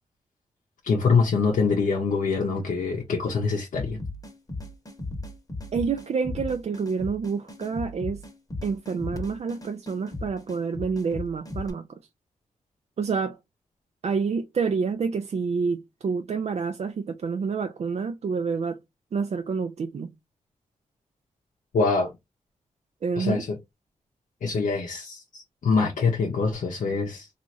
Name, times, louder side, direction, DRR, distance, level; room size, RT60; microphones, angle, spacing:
voice 1, 0.8-4.0 21.7-22.1 23.2-23.6 24.4-27.3, left 4 dB, 75° left, 0.6 m, -24 dB
sound 1, 3.7-11.7, left 2 dB, 25° left, 1.0 m, -36 dB
voice 2, 5.7-8.2 8.6-12.0 13.0-13.4 14.0-18.8 19.1-20.1 23.0-23.4, right 5 dB, 50° right, 0.4 m, -28 dB
3.0 x 2.4 x 2.5 m
cardioid pair, 55°, 14 cm